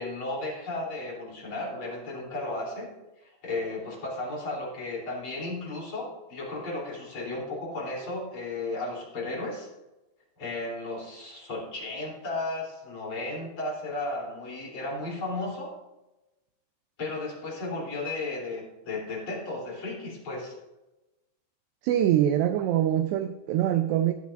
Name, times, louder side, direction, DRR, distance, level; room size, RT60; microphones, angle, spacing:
voice 1, 0.0-2.9 3.2-9.7 10.4-15.7 17.0-20.5, left 2 dB, 30° left, 3.3 m, -34 dB
voice 2, 21.8-24.1, right 11 dB, 85° right, 2.4 m, -24 dB
17.0 x 10.5 x 2.5 m
omnidirectional pair, 5.4 m